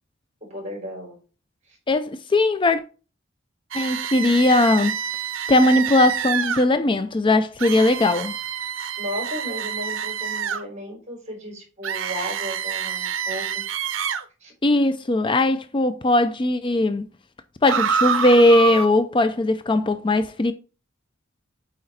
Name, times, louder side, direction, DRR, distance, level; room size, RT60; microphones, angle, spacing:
voice 1, 0.5-1.2 9.0-13.6 14.4-14.5, equal, 35° right, 4.1 m, -34 dB
voice 2, 1.9-2.8 3.7-5.0 5.5-8.3 14.6-17.1 17.6-20.5, left 2 dB, 25° left, 0.4 m, -19 dB
sound 1, 3.7-6.6 7.6-10.6 11.8-14.2 17.6-18.9, right 8 dB, 75° right, 0.7 m, -27 dB
8.7 x 4.3 x 4.2 m
head